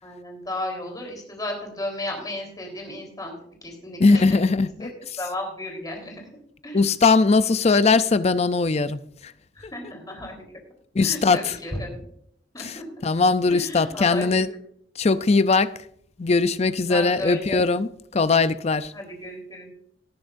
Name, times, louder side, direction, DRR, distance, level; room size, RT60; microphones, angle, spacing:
voice 1, 0.0-3.3 3.6-4.4 4.8-4.9 5.2-6.2 6.6-6.8 9.6-10.4 11.0-12.0 12.5-12.8 13.5-14.3 16.9-17.6 18.9-19.7, left 1 dB, 20° left, 3.9 m, -33 dB
voice 2, 4.0-4.9 6.7-9.3 10.9-11.6 12.6-14.5 15.0-15.7 16.2-18.9, left 4 dB, 40° left, 0.5 m, -20 dB
18.5 x 10.5 x 2.6 m
head